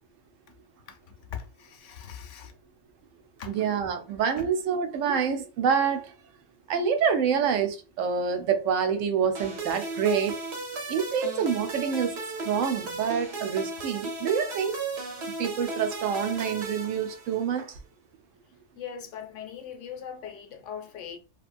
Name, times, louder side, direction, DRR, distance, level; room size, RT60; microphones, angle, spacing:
voice 1, 1.3-2.5 3.4-3.7 18.8-21.2, left 8 dB, 75° left, 0.9 m, -40 dB
voice 2, 3.5-6.1 6.7-10.4 10.9-14.8 15.4-17.8, right 7 dB, 85° right, 1.0 m, -27 dB
sound 1, 9.3-17.6, right 3 dB, 60° right, 1.0 m, -36 dB
2.8 x 2.5 x 2.5 m
omnidirectional pair, 1.3 m